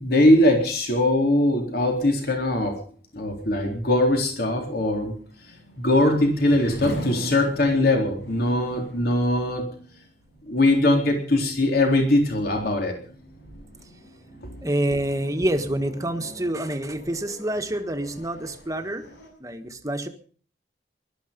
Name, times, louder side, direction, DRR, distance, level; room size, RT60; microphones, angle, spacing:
voice 1, 0.0-2.8 3.1-5.1 5.8-9.6 10.4-12.9, left 1 dB, 60° left, 2 dB, 3.8 m, -21 dB
sound 1, 2.9-19.3, equal, 80° left, 7.1 m, -42 dB
voice 2, 14.6-19.1 19.4-20.1, right 1 dB, 20° right, 7 dB, 1.6 m, -27 dB
20.5 x 12.5 x 5.3 m, 0.44 s
head